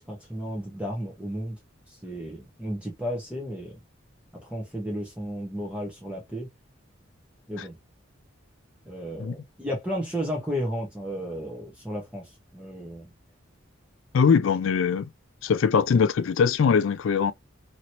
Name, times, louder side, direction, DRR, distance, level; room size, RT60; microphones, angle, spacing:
voice 1, 0.0-1.6 2.0-3.7 4.4-6.5 7.5-7.8 8.9-13.1, equal, 5° right, 1.0 m, -33 dB
voice 2, 14.1-15.1 15.4-17.3, left 6 dB, 75° left, 0.4 m, -22 dB
3.0 x 2.8 x 2.8 m
head